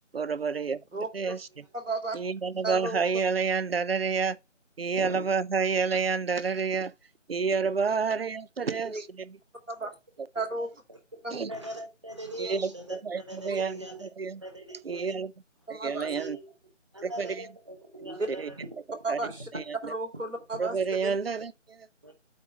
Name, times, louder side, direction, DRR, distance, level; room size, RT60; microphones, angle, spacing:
voice 1, 0.1-0.8 1.1-1.7 2.1-4.4 4.8-6.9 7.3-9.4 11.3-11.5 12.4-14.4 14.8-15.3 15.7-16.4 17.0-17.4 18.3-18.5 18.9-19.2 19.5-19.9 20.6-21.9, right 5 dB, 50° right, 0.5 m, -29 dB
voice 2, 1.7-2.2 2.6-3.0 5.9-6.0 8.9-9.0 9.7-9.9 10.3-10.7 11.2-11.4 15.7-16.1 18.0-18.2 19.0-19.5 19.9-20.8 21.0-21.1, right 3 dB, 85° right, 2.3 m, -33 dB
voice 3, 10.6-11.0 11.3-14.1 14.4-15.1 16.0-16.4 16.9-18.7 22.0-22.1, right 1 dB, 25° right, 1.0 m, -41 dB
8.3 x 3.1 x 6.0 m
figure-of-eight pair, 165°, 37 cm